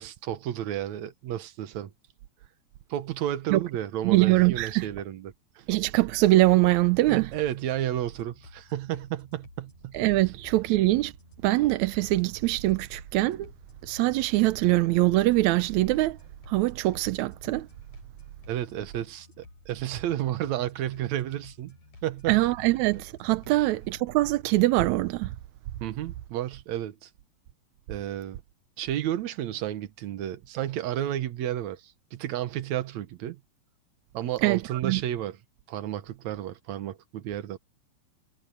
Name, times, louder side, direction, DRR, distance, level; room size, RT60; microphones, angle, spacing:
voice 1, 0.0-1.9 2.9-5.7 7.1-10.0 18.5-21.8 22.0-22.4 23.5-23.7 25.8-27.1 27.9-28.4 28.8-33.4 34.1-35.4 35.7-37.6, right 12 dB, 65° right, 2.1 m, -32 dB
voice 2, 4.0-4.9 5.7-7.3 9.9-11.1 11.4-13.5 13.8-16.2 16.5-17.7 22.3-25.3 34.4-35.0, right 18 dB, 85° right, 1.7 m, -23 dB
sound 1, 7.3-24.4, left 3 dB, 55° left, 9.1 m, -53 dB
omnidirectional pair, 4.0 m